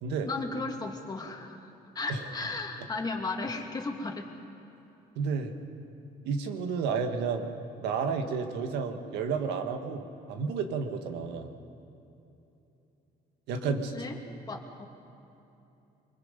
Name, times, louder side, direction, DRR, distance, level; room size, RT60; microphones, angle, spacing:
voice 1, 0.2-1.7 1.9-4.3 13.6-14.2 14.5-14.9, left 3 dB, 25° left, 2 dB, 2.2 m, -35 dB
voice 2, 5.1-5.5 6.2-7.5 7.8-11.5 13.5-13.9, right 5 dB, 90° right, 6 dB, 1.7 m, -31 dB
24.0 x 22.0 x 5.3 m, 2.9 s
cardioid pair, 110°, 17 cm